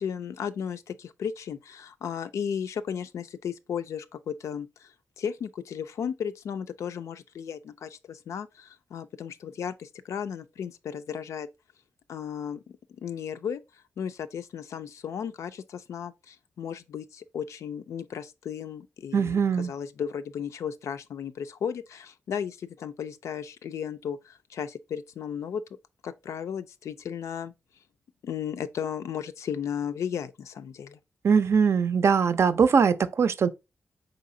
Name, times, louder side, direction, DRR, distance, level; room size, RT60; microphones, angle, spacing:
voice 1, 0.0-11.5 12.1-13.6 14.0-25.6 26.0-27.5 28.2-31.0, left 8 dB, 85° left, 0.4 m, -35 dB
voice 2, 19.1-19.7 31.2-33.5, right 6 dB, 65° right, 0.4 m, -21 dB
4.0 x 3.8 x 2.6 m
cardioid pair, 80°, 5 cm